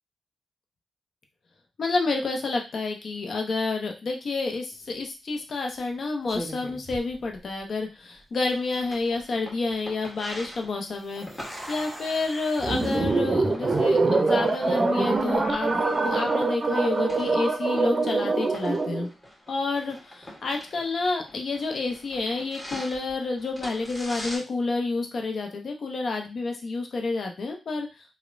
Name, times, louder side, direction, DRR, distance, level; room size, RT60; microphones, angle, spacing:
voice 1, 1.8-11.3 11.7-15.7 16.0-19.1 19.5-27.9, left 3 dB, 60° left, 2 dB, 0.6 m, -29 dB
sound 1, 4.7-5.0 5.8-5.9 6.3-7.8 8.1-8.2 8.8-9.2 11.0-13.0, equal, 5° right, 0.7 m, -41 dB
sound 2, 8.4-24.4, equal, 20° left, 1.5 m, -45 dB
sound 3, 12.6-19.1, right 3 dB, 45° right, 0.5 m, -24 dB
2.9 x 2.1 x 2.5 m, 0.29 s
supercardioid pair, 40°, 0 cm